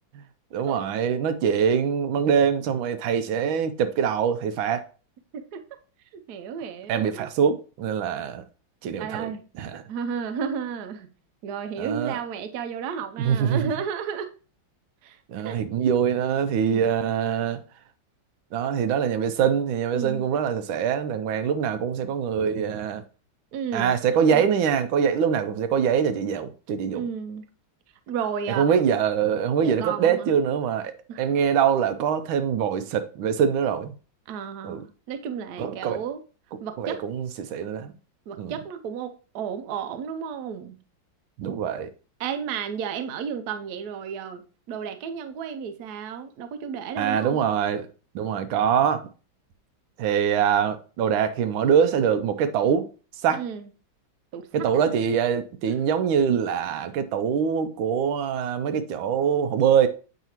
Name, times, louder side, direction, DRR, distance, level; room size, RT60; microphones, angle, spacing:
voice 1, 0.5-4.9 6.9-8.4 8.8-9.3 9.6-9.8 11.8-12.2 13.2-13.7 15.3-17.6 18.5-23.0 23.7-27.1 28.5-33.9 34.6-34.8 35.6-36.0 36.8-37.9 38.4-38.5 41.4-41.9 47.0-47.9 48.1-49.1 50.0-52.9 53.2-53.4 54.5-59.9, right 7 dB, 85° right, 1.4 m, -24 dB
voice 2, 6.1-7.3 9.0-9.4 9.9-11.1 11.4-14.3 15.0-15.2 15.4-15.6 16.7-16.9 19.9-20.2 23.5-23.9 24.3-24.4 26.9-27.4 28.1-28.7 29.6-30.4 31.1-31.3 34.3-36.2 36.6-37.0 38.3-40.8 42.2-47.5 53.3-53.7 54.3-54.7, right 7 dB, 65° right, 1.1 m, -33 dB
8.1 x 4.9 x 2.9 m
omnidirectional pair, 2.2 m